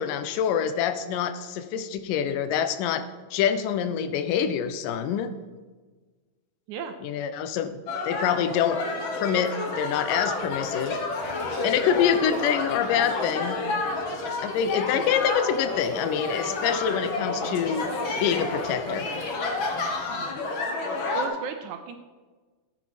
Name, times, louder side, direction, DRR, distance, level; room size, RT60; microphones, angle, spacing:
voice 1, 0.0-5.3 7.0-8.8 9.1-11.0 11.6-13.6 14.4-17.9 18.2-19.1, left 8 dB, 75° left, 11 dB, 2.3 m, -26 dB
sound 1, 7.9-21.3, left 3 dB, 50° left, 1.6 m, -30 dB
Waves surf, 9.9-20.3, equal, 20° right, 3.0 m, -48 dB
voice 2, 21.1-22.0, right 6 dB, 75° right, 7 dB, 1.9 m, -34 dB
13.5 x 8.6 x 5.1 m, 1.3 s
omnidirectional pair, 4.0 m